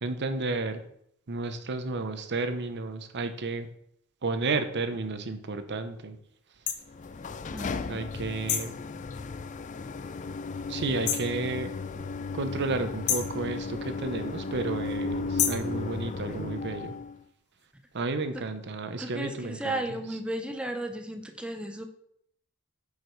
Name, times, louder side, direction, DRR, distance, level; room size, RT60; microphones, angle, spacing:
voice 1, 0.0-0.8 1.3-3.7 4.2-6.2 7.9-8.8 10.7-11.7 12.3-16.9 17.9-19.8, right 3 dB, 50° right, 9 dB, 0.8 m, -32 dB
sound 1, 6.7-6.8 8.5-8.8 11.1-11.3 13.1-13.4 15.4-15.7, left 9 dB, 75° left, 0.9 m, -28 dB
sound 2, 6.9-17.2, left 3 dB, 35° left, 0.4 m, -35 dB
voice 2, 7.5-8.0 18.3-18.4 19.0-21.9, right 1 dB, 5° right, 6 dB, 0.7 m, -34 dB
8.1 x 5.1 x 4.6 m, 0.71 s
head